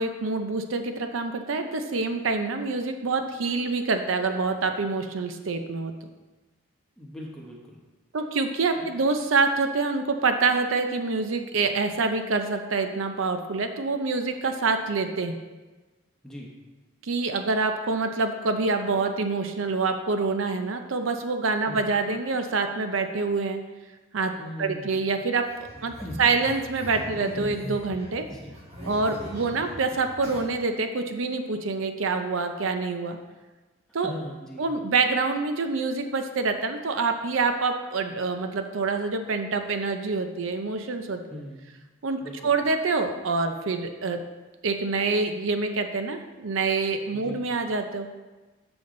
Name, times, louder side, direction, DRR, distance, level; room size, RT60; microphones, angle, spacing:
voice 1, 0.0-5.9 8.1-15.4 17.0-23.6 24.1-24.3 24.6-25.4 25.8-25.9 26.2-28.2 28.8-33.2 33.9-34.1 34.6-41.2 42.0-44.2 44.6-48.1, right 4 dB, 80° right, 7 dB, 0.6 m, -26 dB
voice 2, 7.0-7.8 8.8-9.1 16.2-16.5 21.6-21.9 24.4-25.0 25.8-26.4 27.1-27.2 28.2-28.6 28.8-29.0 29.5-29.6 34.0-34.7 41.3-41.6 42.2-42.5 47.1-47.4, left 1 dB, 5° left, -3 dB, 1.1 m, -40 dB
sound 1, 25.4-30.4, equal, 30° right, 2.0 m, -39 dB
7.0 x 6.8 x 3.9 m, 1.2 s
head